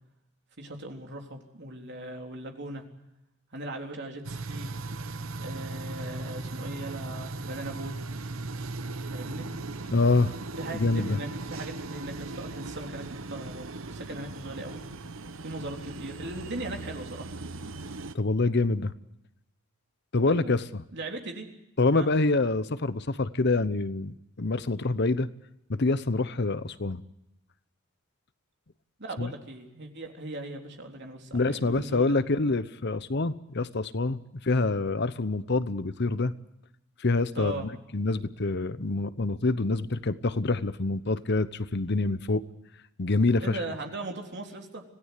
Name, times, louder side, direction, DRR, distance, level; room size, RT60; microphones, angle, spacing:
voice 1, 0.6-2.8 3.5-4.7 5.4-7.9 9.1-9.5 10.6-14.8 15.4-17.3 20.3-20.5 20.9-21.5 21.9-22.1 29.0-32.1 37.4-37.7 43.4-44.8, right 1 dB, 55° right, 2 dB, 3.7 m, -39 dB
sound 1, 4.2-18.1, right 3 dB, 70° right, 1.0 m, -38 dB
voice 2, 9.9-10.4 10.7-11.2 18.1-18.9 20.1-20.8 21.8-25.3 25.7-27.0 29.2-29.3 31.3-36.3 37.0-42.4 43.0-43.6, left 3 dB, 55° left, 14 dB, 0.9 m, -26 dB
26.0 x 17.5 x 8.3 m, 0.87 s
head